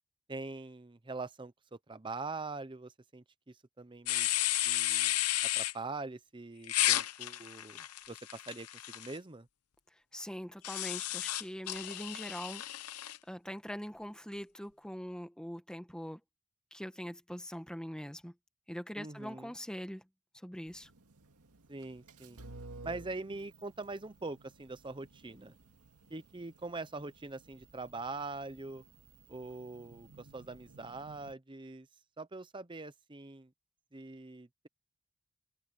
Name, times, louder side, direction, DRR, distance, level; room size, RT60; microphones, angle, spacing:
voice 1, 0.3-4.3 4.6-5.1 5.4-9.5 19.0-19.5 21.7-22.4 22.8-25.5 26.1-28.8 29.3-31.9 32.2-33.5 33.9-34.7, right 3 dB, 20° right, 0.7 m, -43 dB
sound 1, 4.1-5.7 6.7-9.1 10.6-13.2, left 15 dB, 85° left, 0.8 m, -32 dB
voice 2, 10.1-12.6 13.3-16.2 16.7-18.3 18.7-20.0 20.4-20.9, equal, 5° left, 1.1 m, -42 dB
sound 2, 20.7-31.3, right 2 dB, 90° right, 2.0 m, -55 dB
head